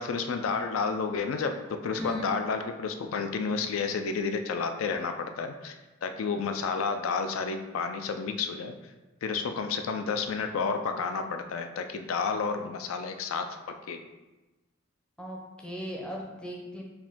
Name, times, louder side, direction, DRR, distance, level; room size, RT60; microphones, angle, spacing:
voice 1, 0.0-5.8 6.0-8.7 9.2-13.6 13.9-14.0, left 5 dB, 85° left, 7 dB, 0.4 m, -31 dB
voice 2, 1.9-2.2 15.2-16.8, left 1 dB, 5° left, -1 dB, 0.5 m, -37 dB
4.6 x 2.6 x 3.5 m, 1.1 s
head